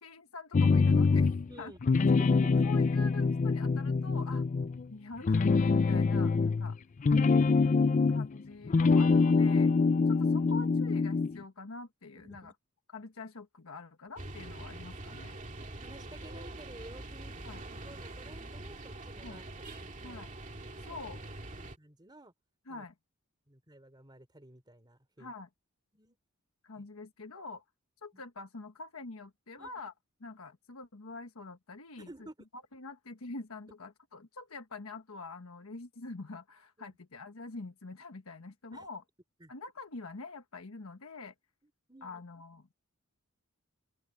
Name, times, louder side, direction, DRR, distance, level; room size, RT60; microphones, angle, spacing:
voice 1, 0.0-1.7 2.6-4.5 4.9-6.8 7.4-7.7 8.1-9.7 10.1-12.5 12.9-15.4 17.4-17.6 19.2-19.4 20.0-20.3 20.8-21.2 22.7-22.9 25.2-25.5 26.6-27.6 28.0-29.9 30.2-32.3 32.5-39.0 39.5-41.3 42.0-42.7, left 3 dB, 85° left, 1.3 m, -45 dB
sound 1, 0.5-1.5 1.8-4.9 5.2-8.4 8.7-11.4, left 4 dB, 35° left, 0.4 m, -25 dB
voice 2, 1.5-1.8 2.2-2.7 7.4-7.6 12.1-12.5 15.8-20.2 20.8-21.0 21.6-22.3 22.7-22.8 23.5-25.3 25.9-26.2 26.8-26.9 28.1-28.2 29.6-29.7 32.0-32.4 36.8-36.9 38.7-38.9 39.4-39.5 41.9-42.2, right 1 dB, 20° right, 3.6 m, -52 dB
sound 2, 14.2-21.8, right 2 dB, 35° right, 2.4 m, -44 dB
open air
head